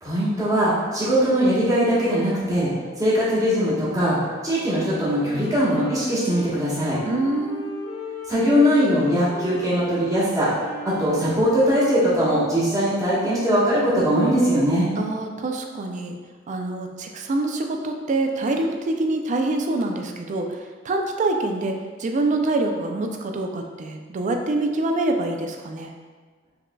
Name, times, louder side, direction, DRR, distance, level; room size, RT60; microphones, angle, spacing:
voice 1, 0.0-2.7 3.0-4.2 4.4-7.0 8.3-10.5 10.8-14.9, equal, 20° right, -9 dB, 1.2 m, -21 dB
Wind instrument woodwind instrument, 5.1-12.8, left 1 dB, 80° left, 0.5 m, -37 dB
voice 2, 7.0-7.7 15.0-16.2 16.5-20.6 20.8-25.9, right 2 dB, 40° right, 3 dB, 0.4 m, -25 dB
4.7 x 3.2 x 2.2 m, 1.5 s
head